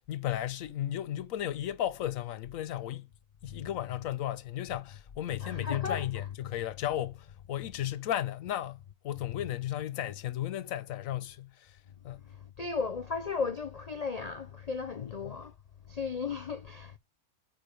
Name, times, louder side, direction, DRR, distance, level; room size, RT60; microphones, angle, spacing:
voice 1, 0.0-3.1 3.4-11.7 12.0-12.2 15.0-15.4, left 12 dB, 65° left, 1.1 m, -35 dB
voice 2, 5.4-6.1 12.6-15.5 15.9-17.0, left 5 dB, 80° left, 0.3 m, -35 dB
9.2 x 4.6 x 6.5 m
omnidirectional pair, 1.6 m